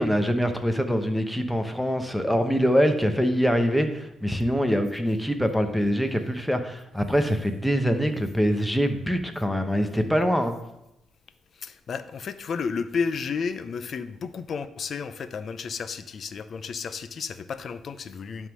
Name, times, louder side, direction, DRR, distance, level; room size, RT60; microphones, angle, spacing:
voice 1, 0.0-10.6, equal, 5° left, 1.0 m, -24 dB
voice 2, 11.5-18.5, left 5 dB, 55° left, 0.6 m, -32 dB
11.0 x 3.7 x 6.2 m
cardioid pair, 90°, 0 cm